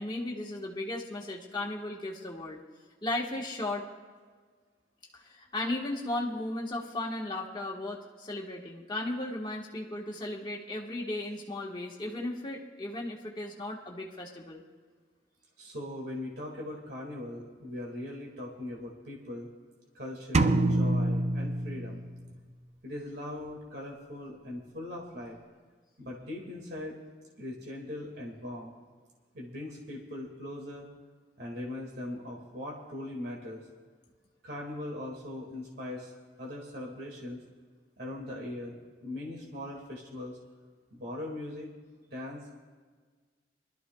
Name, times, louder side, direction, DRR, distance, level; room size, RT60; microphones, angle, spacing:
voice 1, 0.0-2.6 3.0-3.8 5.1-14.6, left 1 dB, 25° left, -2 dB, 1.4 m, -35 dB
voice 2, 15.6-19.5 19.9-22.0 22.8-25.4 26.0-27.0 27.4-28.7 29.3-30.9 31.4-33.6 34.4-36.1 36.4-37.4 38.0-40.4 40.9-41.7 42.1-42.6, left 1 dB, 70° right, -2 dB, 2.0 m, -40 dB
sound 1, 20.3-22.3, right 2 dB, 40° right, 0.5 m, -26 dB
24.0 x 12.5 x 2.3 m, 1.5 s
head